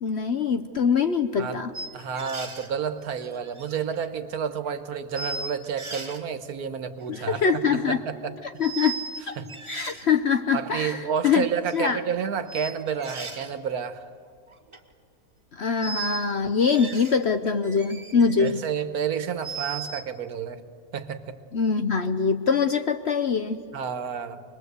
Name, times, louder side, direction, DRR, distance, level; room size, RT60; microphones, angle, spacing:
voice 1, 0.0-1.7 7.1-8.0 8.6-9.4 9.7-11.5 11.7-12.0 15.5-18.6 21.5-23.6, left 6 dB, 55° left, 8 dB, 0.8 m, -24 dB
sound 1, 1.7-2.7 3.2-4.2 4.7-4.8 5.1-6.2 7.0-7.3 8.6-9.2 9.5-10.0 10.9-11.0 12.5-13.5 14.5-14.8 15.8-16.3 16.6-17.2 17.6-18.5 18.9-20.0, right 4 dB, 20° right, 1.4 m, -37 dB
voice 2, 1.9-7.4 7.7-8.3 9.4-9.5 10.5-14.1 18.4-20.6 20.9-21.3 23.7-24.4, right 7 dB, 65° right, 10 dB, 1.5 m, -30 dB
25.5 x 20.5 x 8.1 m, 2.2 s
omnidirectional pair, 1.7 m